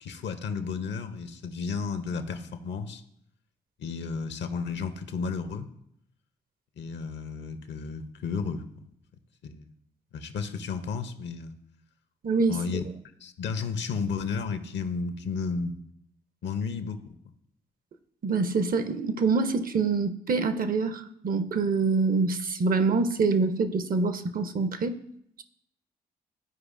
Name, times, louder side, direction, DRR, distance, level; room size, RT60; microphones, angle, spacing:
voice 1, 0.0-3.0 3.8-5.7 6.8-8.6 9.4-9.7 10.1-11.6 12.5-12.8 13.2-15.8 16.4-17.2, left 5 dB, 65° left, 9 dB, 0.7 m, -33 dB
voice 2, 12.2-12.6 18.2-25.0, right 4 dB, 45° right, 11 dB, 0.6 m, -25 dB
12.5 x 4.7 x 2.5 m, 0.72 s
hypercardioid pair, 45°, 20 cm